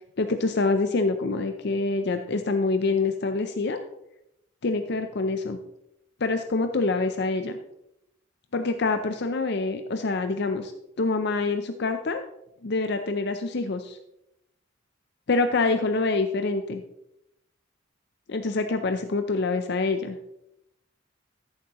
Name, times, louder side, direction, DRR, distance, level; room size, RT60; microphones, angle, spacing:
voice 1, 0.2-3.8 4.6-5.6 6.2-7.6 8.5-10.7 11.0-12.2 12.6-14.0 15.3-16.8 18.3-20.2, left 3 dB, 55° left, 7 dB, 0.6 m, -26 dB
13.5 x 7.4 x 3.0 m, 0.83 s
head